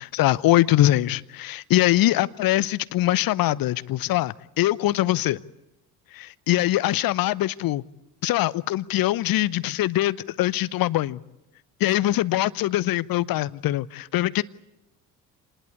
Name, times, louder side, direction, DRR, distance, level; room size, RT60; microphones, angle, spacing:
voice 1, 0.0-5.4 6.1-7.8 8.2-11.2 11.8-14.4, left 15 dB, 45° left, 0.8 m, -23 dB
26.0 x 20.0 x 8.4 m
figure-of-eight pair, 50°, 48 cm